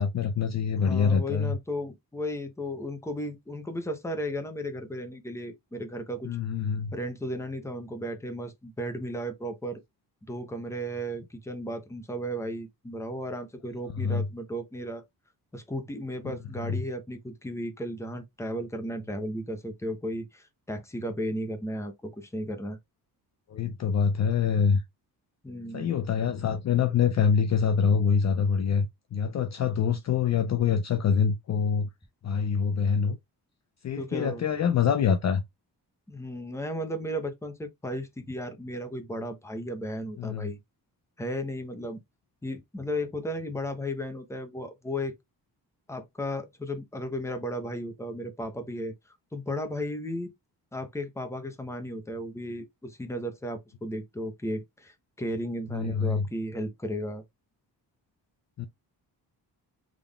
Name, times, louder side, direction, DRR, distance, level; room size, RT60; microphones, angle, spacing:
voice 1, 0.0-1.5 6.2-6.9 13.9-14.3 16.2-16.3 16.6-16.7 23.5-24.8 25.7-31.9 32.2-33.2 33.8-35.4 40.2-40.5 55.7-56.3 58.6-58.7, left 6 dB, 45° left, 0.5 m, -25 dB
voice 2, 0.8-6.3 6.9-9.8 10.3-15.0 15.5-22.8 25.4-25.9 34.0-34.4 36.1-40.6 41.2-42.0 42.4-45.1 45.9-48.9 49.3-50.3 50.7-57.2, equal, 5° left, 0.8 m, -34 dB
3.7 x 3.4 x 2.3 m
cardioid pair, 105°, 38 cm